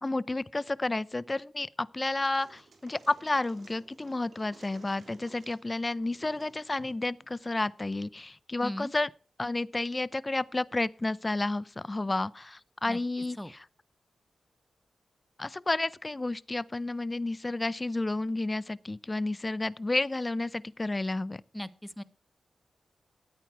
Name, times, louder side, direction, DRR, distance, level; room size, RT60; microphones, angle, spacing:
voice 1, 0.0-9.1 9.4-13.6 15.4-21.4, left 2 dB, 30° left, 0.6 m, -31 dB
sound 1, 2.3-7.7, right 3 dB, 65° right, 3.1 m, -57 dB
voice 2, 12.9-13.5 21.5-22.0, equal, 5° left, 1.0 m, -39 dB
13.0 x 9.0 x 4.6 m
supercardioid pair, 40°, 0 cm